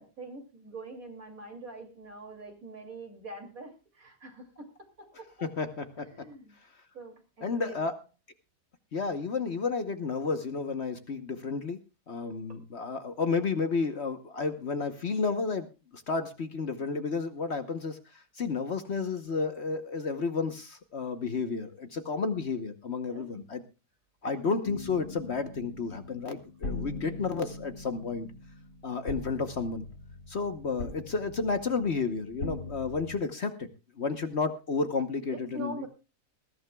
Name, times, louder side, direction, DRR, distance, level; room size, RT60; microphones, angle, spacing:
voice 1, 0.0-5.3 5.6-5.7 6.0-6.6 6.9-7.8 12.5-12.6 23.1-23.4 35.3-35.9, right 2 dB, 60° right, 4 dB, 3.3 m, -44 dB
voice 2, 5.6-6.1 7.4-7.9 8.9-11.8 12.1-15.7 15.9-23.6 24.2-28.3 28.8-29.9 30.3-33.7 34.0-35.9, left 4 dB, 45° left, 9 dB, 1.2 m, -31 dB
sound 1, 24.6-33.2, left 2 dB, 75° left, 3.0 m, -41 dB
20.5 x 15.0 x 2.3 m, 0.30 s
omnidirectional pair, 1.7 m